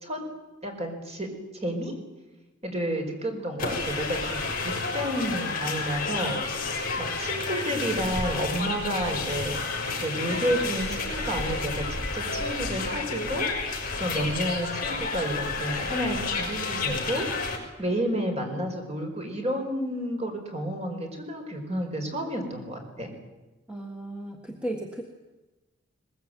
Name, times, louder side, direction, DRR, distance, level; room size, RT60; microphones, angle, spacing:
voice 1, 0.6-1.3 1.6-1.9 2.6-6.4 7.0-9.6 10.0-23.1, right 1 dB, 30° right, 3 dB, 5.2 m, -31 dB
sound 1, 3.6-17.6, left 3 dB, 45° left, 5.3 m, -30 dB
voice 2, 23.7-25.0, right 1 dB, 5° right, 2 dB, 1.7 m, -35 dB
22.0 x 21.0 x 9.3 m, 1.1 s
head